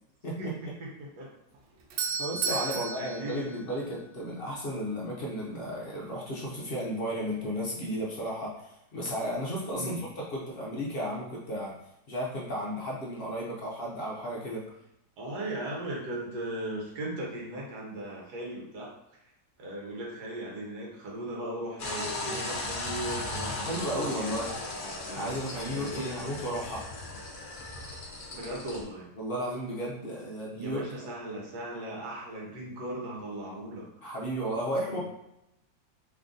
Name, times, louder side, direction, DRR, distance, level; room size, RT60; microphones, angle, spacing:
voice 1, 0.4-0.9 1.2-1.3 2.5-3.5 9.7-10.0 15.2-18.9 19.2-19.3 19.6-24.3 25.1-25.4 25.7-26.4 28.2-29.2 30.5-33.9 34.9-35.0, right 1 dB, 70° right, -2 dB, 1.5 m, -38 dB
Doorbell, 1.5-4.4, right 6 dB, 90° right, 1.2 m, -34 dB
voice 2, 2.2-11.8 12.1-14.7 23.6-24.5 25.1-26.9 29.2-30.8 34.0-35.0, equal, 50° left, -4 dB, 0.7 m, -34 dB
sound 1, 21.8-28.8, left 2 dB, 85° left, 0.4 m, -36 dB
3.3 x 2.5 x 3.7 m, 0.87 s
omnidirectional pair, 1.8 m